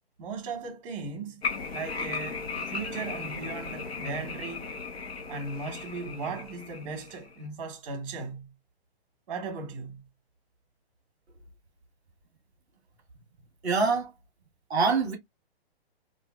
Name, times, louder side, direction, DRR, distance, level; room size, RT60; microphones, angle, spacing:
voice 1, 0.2-1.4 1.7-4.7 5.3-8.5 9.3-10.0, right 4 dB, 30° right, 1.1 m, -37 dB
sound 1, 1.4-7.4, left 4 dB, 75° left, 1.2 m, -36 dB
voice 2, 13.6-14.1 14.7-15.1, right 4 dB, ahead, 0.3 m, -24 dB
4.3 x 2.6 x 2.2 m
hypercardioid pair, 165°, 31 cm